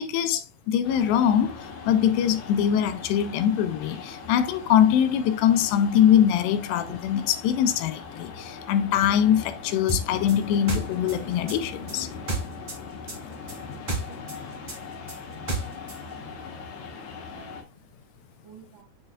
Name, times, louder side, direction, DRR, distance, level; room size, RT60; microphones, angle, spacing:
voice 1, 0.0-1.5 1.9-12.1, left 9 dB, 85° left, 2.9 m, -22 dB
sound 1, 0.8-17.6, left 5 dB, 65° left, 2.0 m, -40 dB
sound 2, 9.9-12.8 13.1-16.0, right 3 dB, 25° right, 1.1 m, -31 dB
voice 2, 13.4-14.2 15.4-16.3 17.3-17.6 18.4-18.8, right 7 dB, 60° right, 3.1 m, -52 dB
7.0 x 6.8 x 2.3 m
omnidirectional pair, 4.8 m